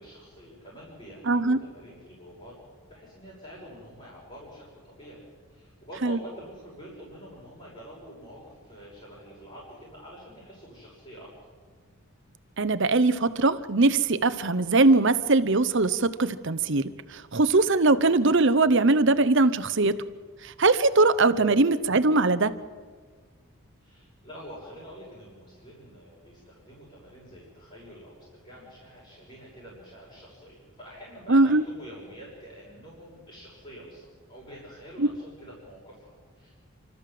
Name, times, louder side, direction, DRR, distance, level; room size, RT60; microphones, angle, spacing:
voice 1, 0.0-2.5 2.9-5.2 5.5-11.3 23.8-36.5, equal, 25° left, -8 dB, 6.6 m, -47 dB
voice 2, 1.3-1.6 6.0-6.2 12.6-20.0 20.4-22.5 31.3-31.6 35.0-35.1, right 3 dB, 55° right, 13 dB, 0.9 m, -21 dB
30.0 x 13.5 x 7.7 m, 1.5 s
head